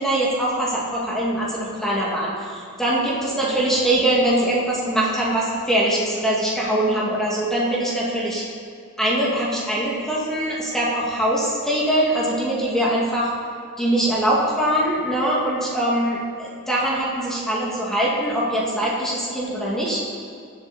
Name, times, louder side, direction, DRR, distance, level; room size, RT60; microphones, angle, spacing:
voice 1, 0.0-8.4 9.0-13.3 13.8-20.0, right 1 dB, ahead, -6 dB, 2.1 m, -22 dB
19.0 x 7.9 x 4.2 m, 2.4 s
head